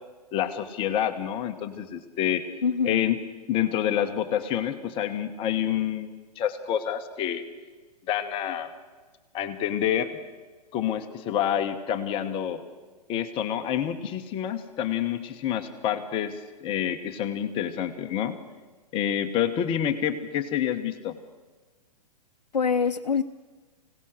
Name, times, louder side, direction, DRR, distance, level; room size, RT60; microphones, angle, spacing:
voice 1, 0.3-2.4 2.8-3.2 3.5-7.4 8.1-8.7 9.3-10.2 10.7-12.6 13.1-18.4 18.9-21.1, left 10 dB, 25° left, 8 dB, 1.1 m, -28 dB
voice 2, 2.6-3.0 22.5-23.2, left 6 dB, 75° left, 5 dB, 0.7 m, -24 dB
25.0 x 17.0 x 6.4 m, 1.3 s
figure-of-eight pair, 115°, 21 cm